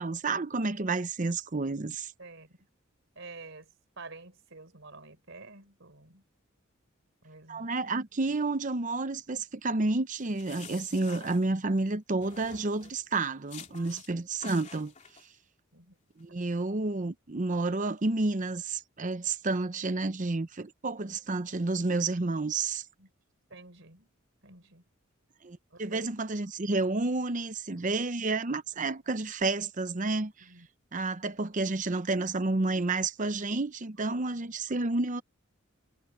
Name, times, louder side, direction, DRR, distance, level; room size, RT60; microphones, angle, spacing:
voice 1, 0.0-2.1 7.5-14.9 16.2-22.8 25.4-30.5 30.9-35.2, right 3 dB, 40° right, 0.8 m, -30 dB
voice 2, 2.2-2.6 3.1-6.2 7.2-7.7 8.2-8.4 13.7-14.0 15.7-16.0 23.0-23.1 23.5-24.1 24.4-24.8 25.7-26.1 27.7-28.0 30.4-30.7 34.0-34.5, right 3 dB, 65° right, 4.7 m, -50 dB
sound 1, 10.2-11.9 12.2-13.0 13.5-14.1 14.4-15.2, left 6 dB, 35° left, 3.0 m, -49 dB
head